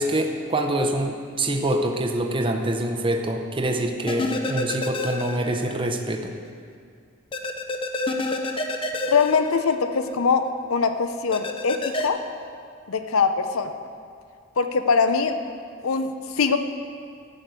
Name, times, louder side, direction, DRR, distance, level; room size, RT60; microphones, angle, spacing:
voice 1, 0.0-6.3, right 1 dB, 25° right, 3 dB, 0.6 m, -25 dB
sound 1, 4.1-5.8 6.1-6.2 7.3-10.1 11.3-12.1, left 2 dB, 25° left, 0.6 m, -28 dB
voice 2, 9.1-12.2 12.9-13.7 14.6-15.3 15.8-16.6, left 5 dB, 80° left, 9 dB, 0.6 m, -22 dB
11.5 x 5.3 x 8.1 m, 2.3 s
head